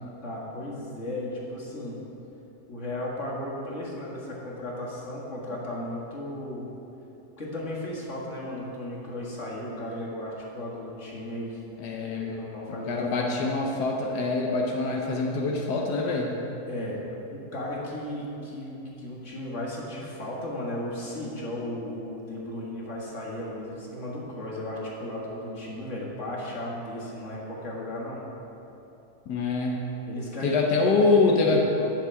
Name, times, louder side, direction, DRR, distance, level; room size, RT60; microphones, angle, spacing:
voice 1, 0.2-2.0 2.7-6.7 7.4-11.6 12.0-13.3 16.7-17.0 17.3-28.2 30.1-31.6, left 1 dB, 50° left, -4 dB, 2.2 m, -35 dB
voice 2, 11.8-12.5 12.9-16.3 29.3-29.8 30.4-31.6, left 3 dB, 85° left, 0 dB, 1.5 m, -25 dB
10.5 x 7.2 x 5.8 m, 3.0 s
omnidirectional pair, 1.7 m